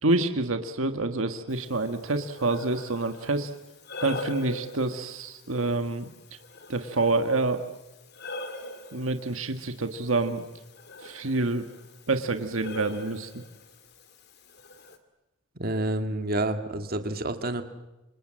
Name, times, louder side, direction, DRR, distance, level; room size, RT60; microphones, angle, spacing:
voice 1, 0.0-3.5 4.0-6.0 6.7-7.6 8.9-10.4 11.0-11.6 12.1-13.4, right 2 dB, 70° right, 7 dB, 1.6 m, -27 dB
Breathing, 1.5-15.0, left 1 dB, 50° left, 2.5 m, -43 dB
voice 2, 15.6-17.6, right 1 dB, 45° right, 7 dB, 1.9 m, -29 dB
28.5 x 26.5 x 7.6 m, 1.0 s
head